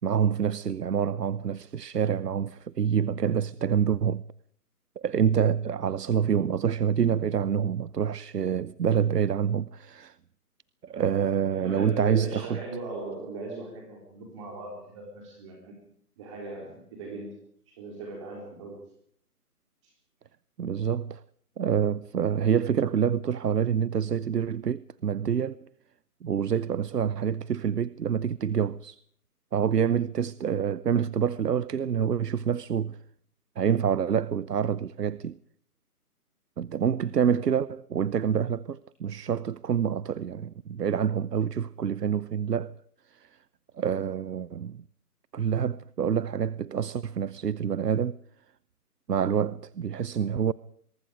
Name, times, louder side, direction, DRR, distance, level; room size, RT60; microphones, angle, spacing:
voice 1, 0.0-4.2 5.0-10.2 10.8-12.6 20.6-21.2 21.6-25.6 26.2-29.0 29.5-33.0 33.6-35.4 36.6-42.8 43.1-43.3 43.7-44.8 45.3-48.2 49.1-50.5, right 8 dB, 85° right, 0.8 m, -27 dB
voice 2, 11.5-15.8 16.2-17.4 17.7-18.8 19.8-19.9, right 2 dB, 20° right, 3.9 m, -39 dB
24.5 x 23.0 x 5.1 m
hypercardioid pair, 165°, 46 cm